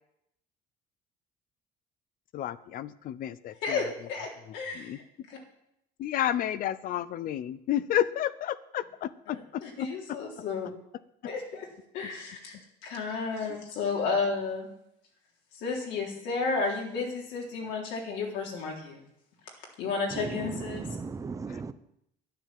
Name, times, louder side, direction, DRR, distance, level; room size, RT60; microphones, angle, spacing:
voice 1, 2.3-3.8 4.7-5.0 6.0-9.6 21.5-21.6, left 11 dB, 50° left, 16 dB, 0.7 m, -31 dB
voice 2, 3.6-5.0 5.3-5.4 9.3-10.7 11.3-11.7 11.9-12.6 12.8-14.7 15.5-19.0 19.8-20.9, left 4 dB, 80° left, -1 dB, 3.7 m, -32 dB
voice 3, 20.1-21.7, right 4 dB, 15° right, 12 dB, 0.7 m, -36 dB
11.0 x 10.5 x 7.6 m, 0.78 s
cardioid pair, 165°, 18 cm